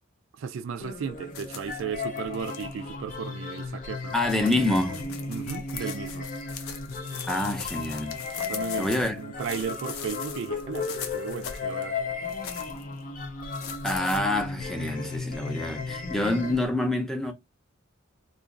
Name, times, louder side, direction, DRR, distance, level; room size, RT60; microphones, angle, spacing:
voice 1, 0.4-4.1 5.3-6.3 8.5-12.0, right 6 dB, 60° right, 0.3 m, -35 dB
sound 1, 0.8-16.7, left 4 dB, 40° left, 0.7 m, -35 dB
sound 2, 1.3-2.7 3.6-3.7 4.0-9.1 9.4-11.8 12.2-12.8 13.5-14.2, left 7 dB, 80° left, 0.6 m, -41 dB
voice 2, 4.1-5.0 5.8-5.9 7.3-8.2 8.8-9.2 13.8-17.3, left 1 dB, ahead, 0.6 m, -27 dB
3.0 x 2.4 x 3.7 m
head